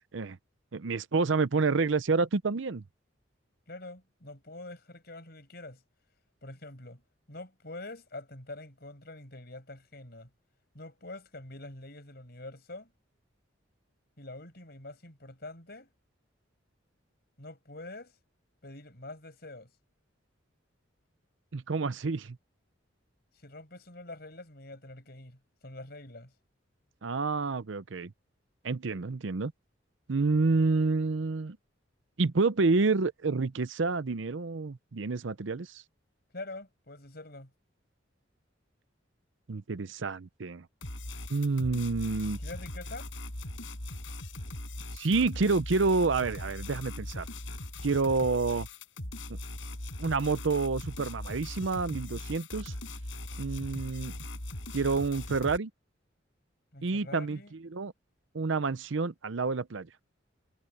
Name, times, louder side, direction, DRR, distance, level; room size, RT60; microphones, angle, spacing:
voice 1, 0.7-2.8 21.5-22.4 27.0-28.1 28.6-29.5 30.1-31.6 32.2-35.8 39.5-40.6 41.3-42.4 44.9-47.3 47.8-48.7 49.3-49.4 50.0-52.7 53.4-54.1 54.7-55.7 56.8-57.9 58.3-59.9, right 4 dB, 70° right, 0.7 m, -28 dB
voice 2, 3.7-5.8 6.4-7.0 7.3-10.3 10.7-12.9 14.2-15.9 17.4-18.1 18.6-19.7 23.4-26.3 36.3-37.5 42.4-43.1 56.7-57.5, left 2 dB, 50° left, 5.8 m, -45 dB
sound 1, 40.8-55.6, left 1 dB, 75° left, 5.2 m, -40 dB
head